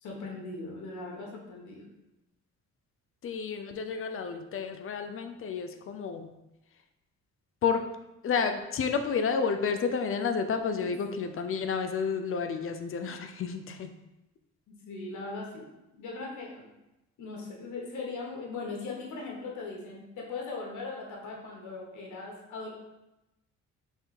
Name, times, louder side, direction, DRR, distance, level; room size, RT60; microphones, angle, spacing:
voice 1, 0.0-1.9 10.8-11.2 14.7-16.7 17.2-22.7, left 3 dB, 75° left, -1 dB, 1.3 m, -39 dB
voice 2, 3.2-6.3 7.6-7.8 8.2-13.9, left 5 dB, 45° left, 7 dB, 0.5 m, -30 dB
3.5 x 3.5 x 4.2 m, 0.95 s
cardioid pair, 90°, 30 cm